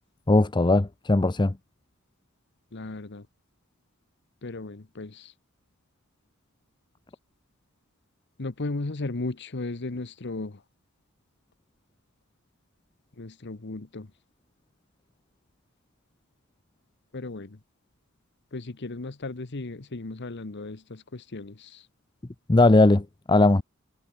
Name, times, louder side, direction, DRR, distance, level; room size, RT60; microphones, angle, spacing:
voice 1, 0.3-1.5 22.5-23.6, left 2 dB, 20° left, 0.6 m, -19 dB
voice 2, 2.7-3.3 4.4-5.3 8.4-10.6 13.2-14.1 17.1-17.6 18.5-21.9, left 2 dB, 55° left, 1.1 m, -35 dB
head